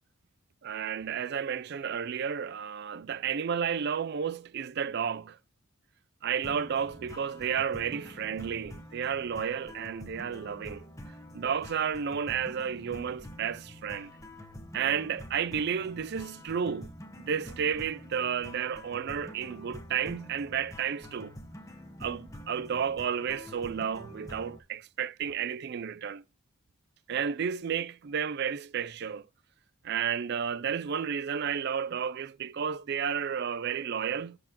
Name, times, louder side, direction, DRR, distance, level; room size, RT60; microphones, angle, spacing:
voice 1, 0.6-5.4 6.2-10.9 11.3-14.1 14.7-21.3 22.0-26.2 27.1-29.3 29.8-34.4, right 7 dB, 50° right, 0.4 m, -32 dB
sound 1, 6.4-24.6, left 1 dB, 15° left, 1.1 m, -47 dB
11.5 x 6.9 x 2.9 m
head